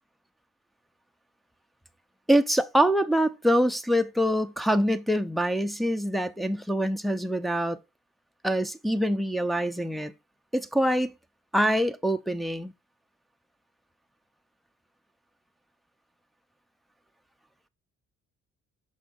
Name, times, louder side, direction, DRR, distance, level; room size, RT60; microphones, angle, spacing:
voice 1, 2.3-7.8 8.4-10.1 10.5-11.1 11.5-12.7, equal, ahead, 0.6 m, -25 dB
6.3 x 4.5 x 3.9 m
cardioid pair, 90°, 30 cm